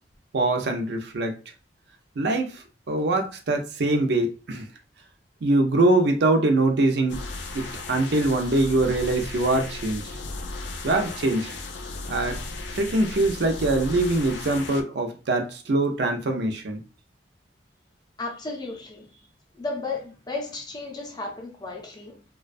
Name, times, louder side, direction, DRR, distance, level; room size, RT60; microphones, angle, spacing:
voice 1, 0.3-1.3 2.2-4.7 5.4-7.2 7.5-10.1 10.8-11.5 12.1-12.4 12.7-16.8, right 2 dB, 70° right, 0.5 m, -23 dB
sound 1, 7.1-14.8, left 3 dB, 75° left, 0.4 m, -35 dB
voice 2, 18.2-19.3 19.5-22.2, left 3 dB, 25° left, 0.5 m, -34 dB
2.4 x 2.2 x 2.5 m
head